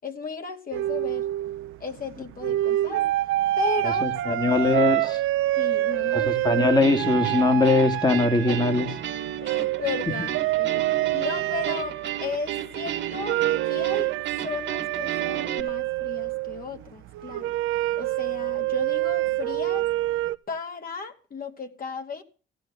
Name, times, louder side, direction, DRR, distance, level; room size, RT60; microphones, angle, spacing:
voice 1, 0.0-1.3 1.8-3.1 3.6-4.8 5.6-6.4 8.5-8.8 9.4-10.8 11.1-14.1 14.4-17.5 18.0-19.9 20.5-22.2, left 4 dB, 45° left, 2.5 m, -35 dB
sound 1, 0.7-20.3, right 15 dB, 90° right, 0.8 m, -27 dB
voice 2, 4.0-5.2 6.1-8.9, left 3 dB, 20° left, 2.1 m, -21 dB
sound 2, 6.8-15.6, right 10 dB, 65° right, 1.7 m, -33 dB
16.5 x 8.0 x 7.1 m
cardioid pair, 90°, 20 cm